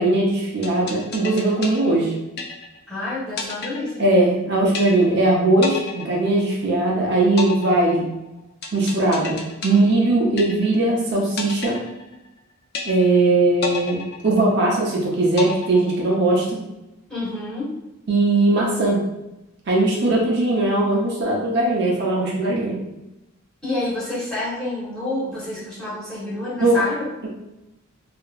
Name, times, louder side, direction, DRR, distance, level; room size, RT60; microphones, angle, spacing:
voice 1, 0.0-2.1 4.0-8.0 8.7-11.8 12.9-16.6 18.1-19.0 19.7-22.8 26.6-26.8, right 2 dB, 50° right, -3 dB, 0.5 m, -19 dB
sound 1, 0.6-2.9 3.4-4.4 4.7-5.3 5.6-6.9 7.4-10.9 11.4-12.4 12.7-13.3 13.6-14.9 15.4-16.4, left 5 dB, 50° left, 0.3 m, -32 dB
voice 2, 2.9-4.0 17.1-17.7 23.6-27.1, left 2 dB, 5° left, -10 dB, 0.9 m, -28 dB
2.8 x 2.5 x 2.2 m, 0.95 s
head